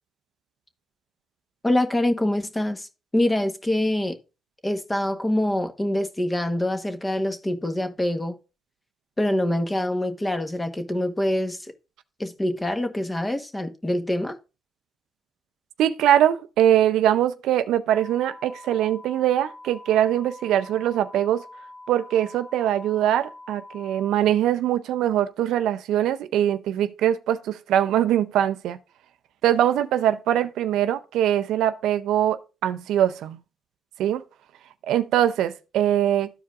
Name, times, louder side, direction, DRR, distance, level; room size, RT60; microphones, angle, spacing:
voice 1, 1.6-2.9 3.1-4.2 4.6-8.4 9.2-11.7 12.2-14.4, left 1 dB, 15° left, 1.1 m, -25 dB
voice 2, 15.8-21.5 21.9-28.8 29.4-33.4 34.0-34.2 34.9-36.3, right 11 dB, 85° right, 0.5 m, -22 dB
sound 1, 17.9-24.1, left 2 dB, 40° left, 1.6 m, -44 dB
13.5 x 4.7 x 2.4 m
cardioid pair, 90°, 0 cm